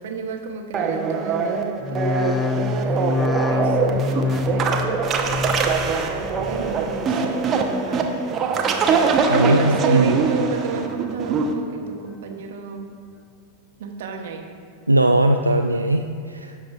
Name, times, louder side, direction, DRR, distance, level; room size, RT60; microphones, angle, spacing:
voice 1, 0.0-2.4 2.8-8.1 9.2-12.9 13.8-14.5, right 5 dB, 55° right, 3 dB, 1.1 m, -32 dB
sound 1, 0.7-11.5, right 5 dB, 30° right, 0.8 m, -23 dB
sound 2, 1.8-7.1 7.5-8.1 8.5-9.2 9.6-10.3 10.7-11.4 11.9-12.4 13.0-13.1, left 4 dB, 20° left, 0.4 m, -28 dB
voice 2, 8.9-10.1 14.9-16.6, right 1 dB, 85° right, 4 dB, 0.3 m, -20 dB
16.5 x 6.2 x 2.4 m, 2.4 s
figure-of-eight pair, 90°, 0 cm